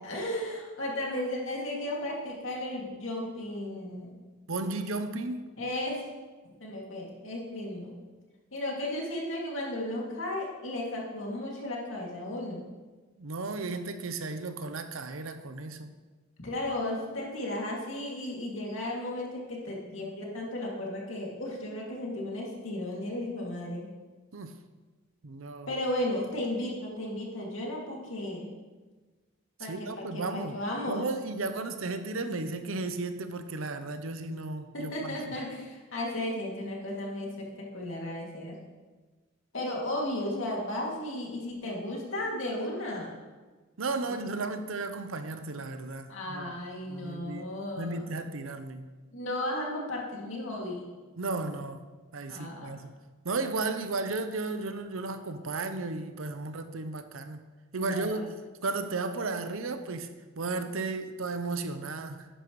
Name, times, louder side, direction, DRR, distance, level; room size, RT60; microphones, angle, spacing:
voice 1, 0.0-4.1 5.6-6.0 6.6-8.0 8.5-12.6 16.4-23.9 25.7-28.5 29.6-31.1 34.7-37.5 37.7-38.5 39.5-43.1 44.0-44.2 46.1-48.2 49.1-50.9 52.3-52.7 57.7-58.2, left 1 dB, 70° left, -2 dB, 2.4 m, -34 dB
voice 2, 4.5-5.5 13.2-15.9 24.3-24.6 25.2-25.7 29.6-30.6 30.9-35.3 43.8-46.5 46.9-48.9 51.2-51.8 52.1-52.9 53.2-57.4 57.7-58.3 58.6-60.1 60.4-62.3, right 3 dB, 80° right, 9 dB, 0.7 m, -34 dB
11.0 x 10.0 x 3.1 m, 1.3 s
head